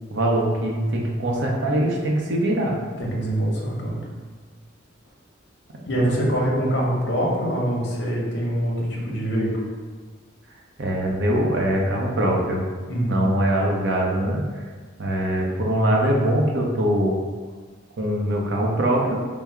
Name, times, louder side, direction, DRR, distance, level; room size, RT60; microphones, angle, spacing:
voice 1, 0.1-2.8 6.0-6.3 10.8-12.6 13.1-14.4 15.0-17.2 17.9-19.2, right 1 dB, 60° right, -1 dB, 0.6 m, -22 dB
voice 2, 3.0-4.0 5.9-9.5 12.9-13.2, equal, 60° left, -2 dB, 0.7 m, -24 dB
3.5 x 2.0 x 4.3 m, 1.4 s
head